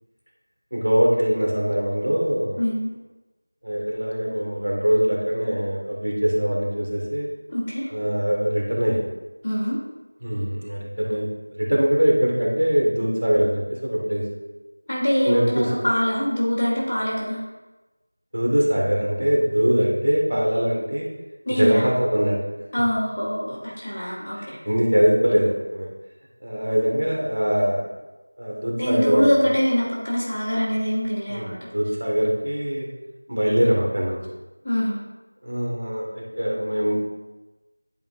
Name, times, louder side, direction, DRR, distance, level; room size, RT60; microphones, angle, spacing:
voice 1, 0.7-2.6 3.6-7.3 7.9-9.1 10.2-11.3 11.6-14.3 15.2-15.8 18.3-21.1 21.5-22.4 24.4-25.9 26.4-27.9 28.4-29.3 31.3-32.9 33.3-34.2 35.4-36.9, equal, 65° right, -3 dB, 2.6 m, -22 dB
voice 2, 2.6-2.9 7.5-7.9 9.4-9.8 14.9-17.4 21.5-21.9 22.7-24.4 28.8-31.6 34.6-35.0, equal, 20° left, -10 dB, 2.0 m, -23 dB
11.0 x 5.0 x 3.8 m, 1.1 s
figure-of-eight pair, 175°, 0 cm